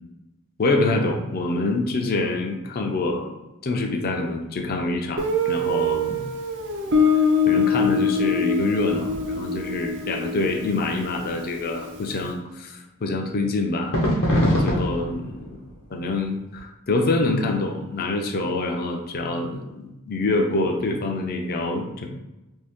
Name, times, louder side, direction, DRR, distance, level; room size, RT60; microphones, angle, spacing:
voice 1, 0.6-3.3 3.6-6.2 7.5-14.0 14.3-15.6 15.9-22.1, left 2 dB, 45° left, 3 dB, 0.5 m, -26 dB
Guitar, 5.2-11.8, left 3 dB, 60° right, 0.5 m, -24 dB
sound 1, 9.0-9.6 13.9-16.1 16.6-16.7, equal, 65° left, 0.9 m, -24 dB
2.7 x 2.7 x 3.5 m, 1.0 s
head